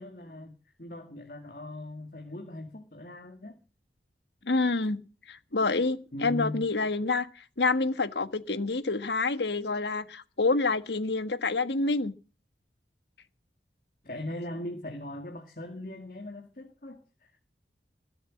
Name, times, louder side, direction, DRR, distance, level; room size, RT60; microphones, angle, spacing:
voice 1, 0.0-3.6 6.1-6.6 14.0-17.4, left 1 dB, 50° left, 2.1 m, -40 dB
voice 2, 4.4-5.0 5.3-12.1, left 3 dB, 75° left, 1.4 m, -28 dB
21.5 x 8.0 x 7.5 m
head